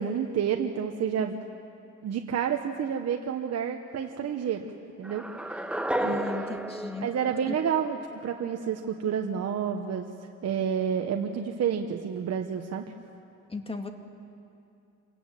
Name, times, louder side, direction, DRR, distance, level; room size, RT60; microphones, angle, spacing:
voice 1, 0.0-1.4 2.0-4.7 5.0-5.3 6.0-6.5 7.0-8.0 8.2-10.1 10.4-12.9, right 8 dB, 55° right, 4 dB, 1.2 m, -29 dB
sound 1, 5.0-8.1, right 1 dB, 5° right, 0.8 m, -33 dB
voice 2, 6.0-7.1 7.5-7.6 13.5-13.9, left 3 dB, 20° left, 5 dB, 2.1 m, -36 dB
27.0 x 17.5 x 7.7 m, 2.6 s
cardioid pair, 90°, 30 cm